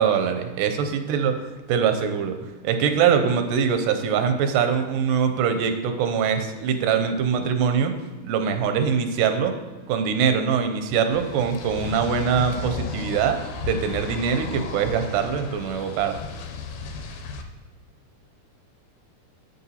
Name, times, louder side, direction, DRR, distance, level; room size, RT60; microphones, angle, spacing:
voice 1, 0.0-1.3 1.7-2.4 2.6-7.9 8.2-9.6 9.9-16.2, right 7 dB, 90° right, 7 dB, 2.2 m, -23 dB
sound 1, 11.1-17.4, left 5 dB, 80° left, 2.0 m, -34 dB
6.7 x 6.7 x 2.8 m, 1.3 s
omnidirectional pair, 3.7 m